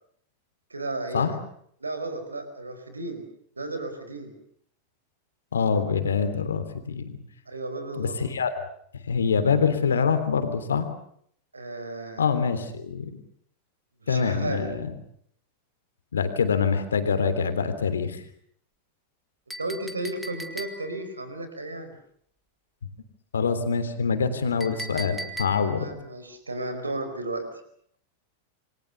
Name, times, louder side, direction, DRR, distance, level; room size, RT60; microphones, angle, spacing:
voice 1, 0.7-1.3 1.8-3.2 3.6-4.3 7.5-8.2 11.5-12.2 14.0-14.7 19.6-21.9 25.6-27.6, right 2 dB, 80° right, 9 dB, 5.1 m, -34 dB
voice 2, 5.5-7.2 8.0-8.7 9.1-10.9 12.2-13.2 14.1-14.9 16.1-18.2 23.3-25.9, left 5 dB, 70° left, 9 dB, 3.4 m, -25 dB
Chink clink, 19.5-21.1 24.6-25.9, right 1 dB, ahead, 2.7 m, -38 dB
28.0 x 24.5 x 6.9 m, 0.67 s
figure-of-eight pair, 90°, 0 cm